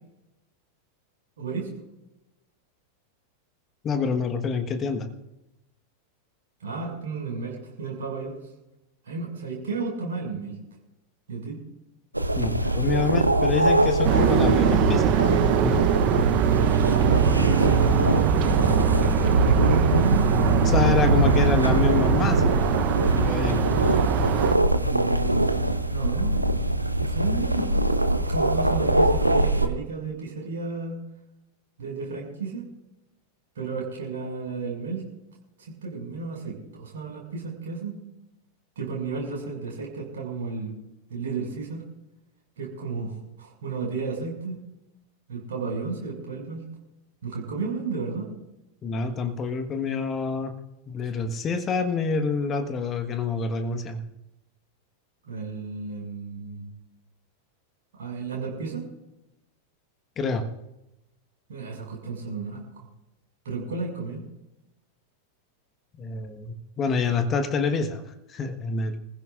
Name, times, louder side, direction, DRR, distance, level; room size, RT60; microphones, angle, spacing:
voice 1, 1.4-1.7 6.6-8.3 9.0-10.5 11.3-11.6 16.6-17.0 17.5-18.5 19.3-20.5 21.0-21.5 24.8-26.4 26.9-27.8 28.3-31.0 31.8-32.7 33.5-35.0 35.7-38.0 38.8-40.7 41.1-41.8 42.6-43.1 43.4-44.6 45.3-46.6 47.2-48.3 55.3-56.7 57.9-58.9 61.5-62.8 63.4-64.2, right 4 dB, 60° right, -2 dB, 6.1 m, -33 dB
voice 2, 3.8-5.1 12.3-15.8 20.6-22.5 23.1-23.6 48.8-50.5 50.9-54.0 60.2-60.4 66.0-68.0 68.3-69.0, left 4 dB, 25° left, 7 dB, 1.4 m, -27 dB
sound 1, 12.1-29.7, right 1 dB, 85° right, 0.9 m, -23 dB
sound 2, 14.0-24.6, right 10 dB, 40° right, 0.9 m, -23 dB
26.0 x 15.5 x 2.5 m, 0.94 s
figure-of-eight pair, 90°, 0 cm